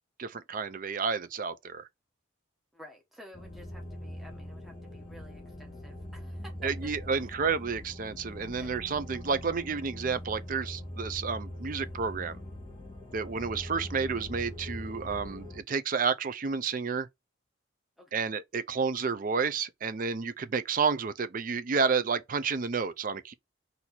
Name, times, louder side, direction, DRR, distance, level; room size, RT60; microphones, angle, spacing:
voice 1, 0.2-1.9 6.6-12.4 13.1-17.1 18.1-23.3, right 5 dB, 40° right, 0.4 m, -30 dB
voice 2, 2.7-6.9 8.6-8.7 18.0-18.2, left 1 dB, ahead, 1.0 m, -52 dB
sound 1, 3.3-15.6, left 1 dB, 20° left, 1.6 m, -42 dB
4.3 x 2.7 x 4.1 m
head